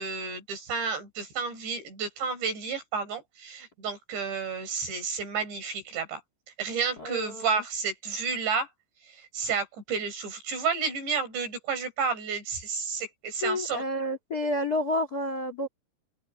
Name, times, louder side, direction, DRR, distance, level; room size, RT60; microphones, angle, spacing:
voice 1, 0.0-6.2 6.6-8.7 9.1-13.8, right 5 dB, 80° right, 8.0 m, -31 dB
voice 2, 7.0-7.6 13.4-15.7, left 1 dB, 25° left, 2.4 m, -30 dB
open air
omnidirectional pair, 5.0 m